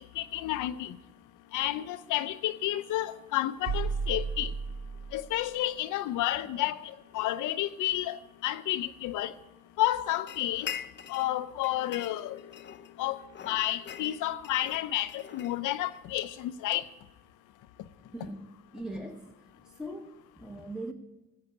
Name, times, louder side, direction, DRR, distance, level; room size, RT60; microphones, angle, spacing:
voice 1, 0.2-1.0 1.5-4.5 5.1-6.8 7.1-9.3 9.8-10.7 11.1-12.4 13.0-13.2 13.5-16.8, left 14 dB, 90° left, 0.6 m, -31 dB
sound 1, 3.7-5.5, right 5 dB, 65° right, 0.9 m, -33 dB
sound 2, 10.3-11.3 11.6-12.9 13.3-16.0, left 9 dB, 35° left, 0.6 m, -42 dB
voice 2, 18.1-19.4 19.6-20.9, right 1 dB, ahead, 1.0 m, -41 dB
11.5 x 8.2 x 8.4 m
cardioid pair, 90°, 30 cm